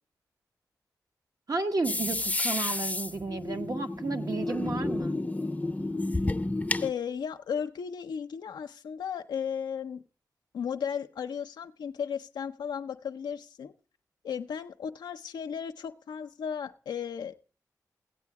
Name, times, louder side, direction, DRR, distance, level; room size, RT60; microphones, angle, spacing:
voice 1, 1.5-5.2, right 3 dB, 55° right, 6 dB, 1.0 m, -32 dB
sound 1, 1.8-6.9, left 2 dB, 20° left, 0.6 m, -31 dB
voice 2, 6.8-10.0 10.5-13.7 14.2-17.3, left 7 dB, 90° left, 7 dB, 0.5 m, -35 dB
15.0 x 8.3 x 4.6 m, 0.39 s
cardioid pair, 40°, 7 cm